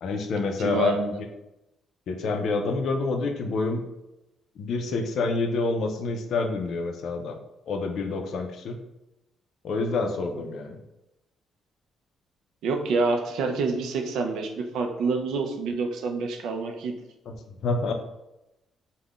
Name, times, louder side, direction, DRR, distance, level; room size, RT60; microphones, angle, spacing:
voice 1, 0.0-1.0 2.1-3.8 4.6-7.4 7.7-8.8 9.6-10.8 17.6-17.9, left 3 dB, 70° left, 5 dB, 0.4 m, -27 dB
voice 2, 0.6-1.2 12.6-16.9, right 4 dB, 80° right, 4 dB, 0.4 m, -27 dB
3.5 x 2.1 x 2.3 m, 0.92 s
cardioid pair, 90°, 0 cm